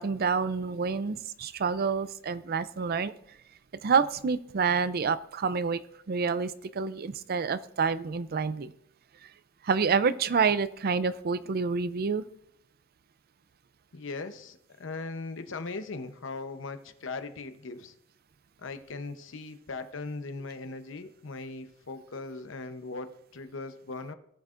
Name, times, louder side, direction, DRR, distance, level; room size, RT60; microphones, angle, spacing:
voice 1, 0.0-3.1 3.8-5.8 6.1-8.7 9.6-12.2, right 5 dB, 50° right, 15 dB, 0.5 m, -28 dB
voice 2, 13.9-17.9 18.6-24.1, left 3 dB, 70° left, 9 dB, 0.9 m, -39 dB
18.0 x 8.0 x 2.5 m, 0.74 s
head